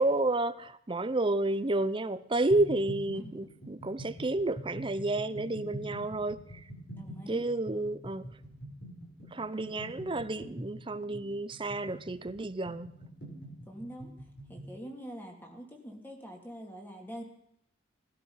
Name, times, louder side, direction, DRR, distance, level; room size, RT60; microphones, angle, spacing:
voice 1, 0.0-6.7 7.3-8.3 9.3-12.9, right 2 dB, 25° right, 0.7 m, -31 dB
sound 1, 2.5-14.8, right 1 dB, 55° left, 7.2 m, -45 dB
voice 2, 6.9-7.4 13.7-14.1 14.5-17.2, equal, 10° left, 3.0 m, -44 dB
19.0 x 12.5 x 5.7 m
head